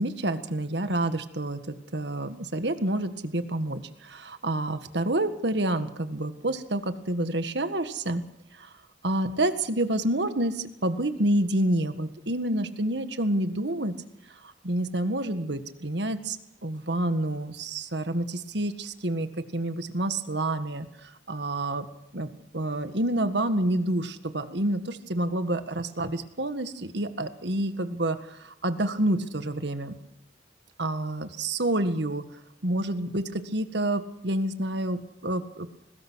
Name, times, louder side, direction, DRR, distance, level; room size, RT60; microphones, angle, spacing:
voice 1, 0.0-8.2 8.5-8.7 9.0-14.0 14.4-16.4 16.6-21.8 22.1-29.9 30.8-32.2 32.6-35.7, right 1 dB, 65° right, 9 dB, 1.7 m, -28 dB
22.5 x 19.5 x 6.4 m, 0.79 s
head